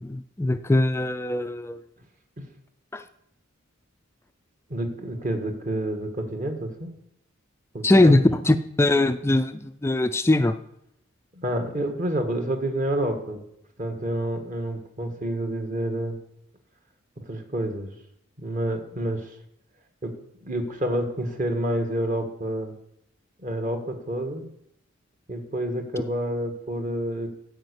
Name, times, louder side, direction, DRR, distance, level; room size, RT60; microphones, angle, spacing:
voice 1, 0.0-1.8 2.9-3.0 7.8-10.6, left 2 dB, 10° left, 11 dB, 0.4 m, -21 dB
voice 2, 4.7-6.9 7.7-8.3 11.3-13.4 13.8-16.2 17.2-17.9 18.4-19.3 20.0-20.1 20.4-22.7 23.4-24.4 25.3-27.3, right 1 dB, 40° right, 5 dB, 1.5 m, -28 dB
13.0 x 5.2 x 8.2 m, 0.77 s
head